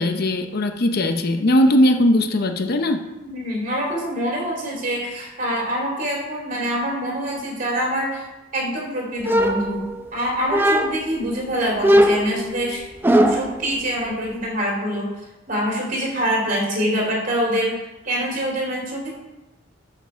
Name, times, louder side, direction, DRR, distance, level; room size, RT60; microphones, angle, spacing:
voice 1, 0.0-3.0, left 1 dB, 50° left, 6 dB, 0.7 m, -19 dB
voice 2, 3.2-8.2 8.5-9.8 10.1-15.1 15.5-17.7 18.0-19.1, equal, 45° right, -2 dB, 3.1 m, -25 dB
sound 1, 9.3-10.1 10.5-11.2 11.8-13.6, equal, 10° right, 0.5 m, -18 dB
11.5 x 5.8 x 4.5 m, 1.0 s
head